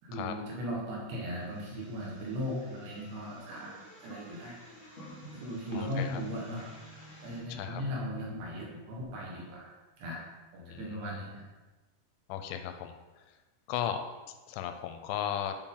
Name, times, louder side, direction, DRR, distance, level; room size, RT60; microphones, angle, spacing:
voice 1, 0.0-4.6 5.3-6.7 7.2-9.7 10.0-10.3 10.5-11.4, equal, 70° right, -4 dB, 3.3 m, -37 dB
sound 1, 1.3-7.4, equal, 65° left, 0.9 m, -54 dB
sound 2, 2.8-8.8, equal, 45° right, 1.4 m, -55 dB
voice 2, 5.7-6.2 7.5-7.8 10.6-11.2 12.3-12.9 13.7-14.0 14.5-15.6, left 10 dB, 85° left, 7 dB, 3.0 m, -36 dB
8.9 x 4.4 x 3.8 m, 1.2 s
omnidirectional pair, 5.4 m